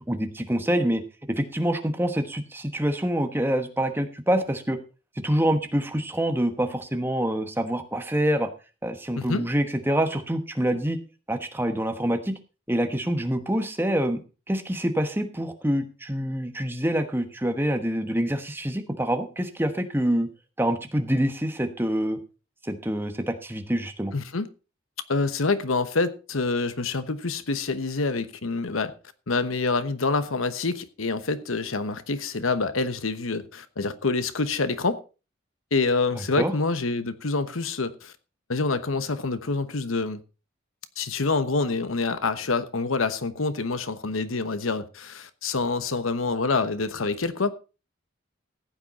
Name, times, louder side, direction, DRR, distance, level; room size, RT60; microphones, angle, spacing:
voice 1, 0.1-1.0 1.3-4.8 5.2-8.5 8.8-11.0 11.3-12.3 12.7-14.2 14.5-20.3 20.6-22.2 22.6-24.1 36.4-36.5, right 1 dB, 10° right, 1.2 m, -26 dB
voice 2, 9.2-9.5 24.1-24.5 25.1-28.9 29.3-35.0 35.7-38.1 38.5-40.2 41.0-47.5, left 3 dB, 80° left, 1.1 m, -26 dB
15.0 x 9.0 x 4.2 m
head